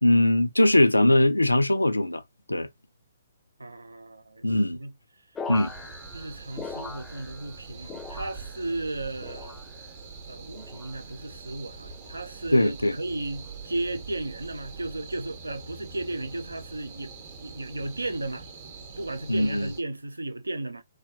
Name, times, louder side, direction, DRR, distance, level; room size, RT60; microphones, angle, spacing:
voice 1, 0.0-2.2 2.5-2.7 4.4-4.8 5.5-5.7 12.5-13.0 19.3-19.7, left 1 dB, 85° left, 0.4 m, -21 dB
voice 2, 3.6-4.9 6.1-9.6 10.3-18.5 19.0-20.8, right 2 dB, 80° right, 0.4 m, -35 dB
sound 1, 5.3-7.6 7.8-8.7 9.2-9.9 10.5-11.0 11.9-12.2 13.2-13.5, left 4 dB, 10° left, 0.3 m, -41 dB
sound 2, 5.5-19.8, right 4 dB, 40° right, 0.7 m, -44 dB
3.1 x 2.2 x 2.6 m
figure-of-eight pair, 125°, 0 cm